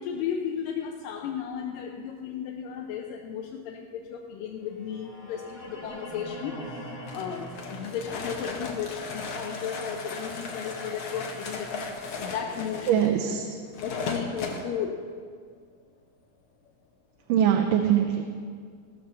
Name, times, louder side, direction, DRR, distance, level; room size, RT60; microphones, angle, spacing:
voice 1, 0.0-13.0 13.8-15.1, left 8 dB, 85° left, 2 dB, 2.4 m, -35 dB
sound 1, 4.7-12.8, equal, 5° left, 1.8 m, -44 dB
sound 2, 7.1-14.6, left 4 dB, 55° left, 1.9 m, -36 dB
voice 2, 12.9-13.5 17.3-18.3, right 9 dB, 85° right, 3 dB, 2.4 m, -22 dB
18.0 x 6.8 x 6.7 m, 2.1 s
omnidirectional pair, 3.8 m